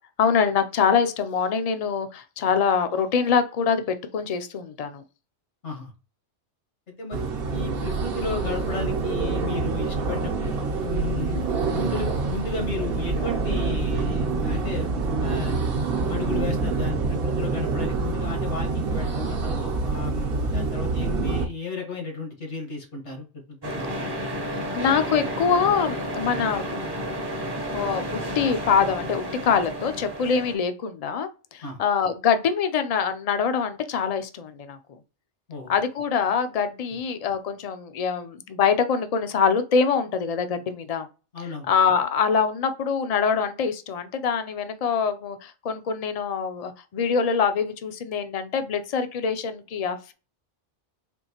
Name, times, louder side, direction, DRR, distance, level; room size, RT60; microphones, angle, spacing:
voice 1, 0.2-3.8 4.1-5.0 11.3-11.4 24.7-26.8 27.7-28.1 28.3-34.8 35.7-41.1 41.7-50.1, left 6 dB, 50° left, 10 dB, 0.4 m, -24 dB
voice 2, 7.0-11.4 11.7-14.9 15.2-15.8 16.1-24.1 31.6-31.8 35.5-35.7 41.3-41.7, left 4 dB, 80° left, 1 dB, 1.8 m, -33 dB
sound 1, 7.1-21.5, right 4 dB, 60° right, 0.9 m, -26 dB
sound 2, 23.6-30.5, equal, 25° right, 0.6 m, -31 dB
4.4 x 3.1 x 2.9 m, 0.33 s
omnidirectional pair, 1.2 m